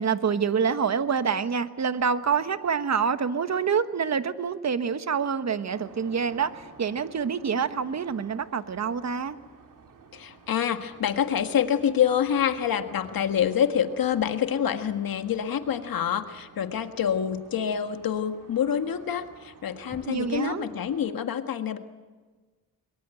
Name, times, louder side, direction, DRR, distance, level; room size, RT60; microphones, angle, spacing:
voice 1, 0.0-9.4 20.1-20.6, right 6 dB, 50° right, 11 dB, 1.3 m, -26 dB
sound 1, 5.7-21.1, right 5 dB, 65° right, 2.5 m, -52 dB
voice 2, 10.1-21.8, left 9 dB, 80° left, 7 dB, 1.7 m, -26 dB
sound 2, 12.9-13.6 15.0-15.9 17.1-18.5 19.1-19.2 19.6-20.7, left 2 dB, 25° left, 3.8 m, -53 dB
23.5 x 22.5 x 9.1 m, 1.3 s
cardioid pair, 90°, 35 cm